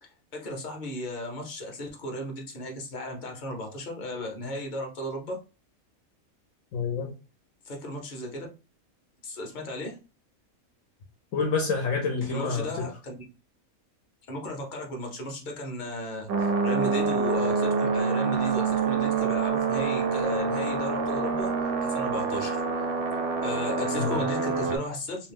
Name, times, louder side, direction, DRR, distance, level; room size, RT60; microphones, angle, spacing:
voice 1, 0.0-5.4 7.6-8.5 9.2-10.0 12.3-13.2 14.3-21.5 21.8-22.6 23.4-25.3, left 1 dB, 40° left, 0.8 m, -35 dB
voice 2, 6.7-7.1 11.3-12.8 23.9-24.2, left 4 dB, 70° left, 1.0 m, -28 dB
sound 1, 16.3-24.8, right 5 dB, 80° right, 1.0 m, -26 dB
2.7 x 2.2 x 3.4 m
omnidirectional pair, 1.5 m